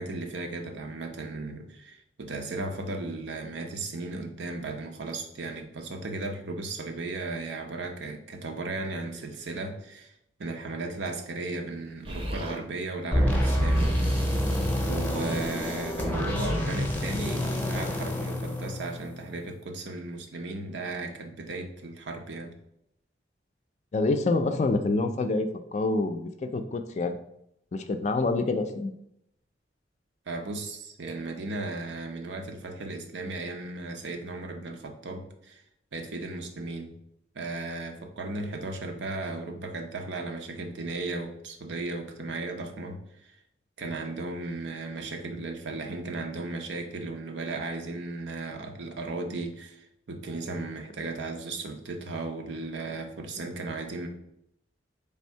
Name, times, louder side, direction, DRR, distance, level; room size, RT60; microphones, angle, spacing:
voice 1, 0.0-10.1 10.4-14.2 14.9-22.6 30.3-35.6 35.9-36.9 37.3-43.4 43.8-54.1, right 2 dB, 85° right, 4 dB, 0.6 m, -36 dB
Explosion, 12.0-12.6 13.4-17.3, equal, 30° right, 0.6 m, -38 dB
sound 1, 13.1-19.3, equal, 10° left, 0.7 m, -27 dB
voice 2, 23.9-25.5 25.7-27.2 27.7-28.9, left 3 dB, 40° left, 7 dB, 0.3 m, -26 dB
3.4 x 2.7 x 4.4 m, 0.78 s
head